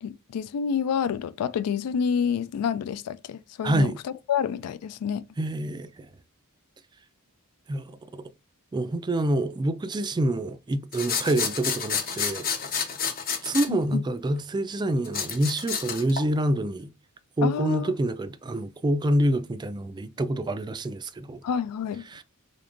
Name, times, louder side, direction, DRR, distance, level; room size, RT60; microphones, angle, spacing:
voice 1, 0.0-5.3 13.7-14.0 17.4-17.9 21.4-22.0, left 7 dB, 90° left, 0.3 m, -28 dB
voice 2, 3.6-4.0 5.4-6.1 7.7-8.3 8.7-12.5 13.4-16.9 17.4-21.4 22.1-22.2, right 1 dB, 20° right, 0.3 m, -27 dB
sound 1, 10.9-13.7 15.0-16.3, left 6 dB, 40° left, 0.7 m, -29 dB
3.7 x 3.5 x 2.5 m
head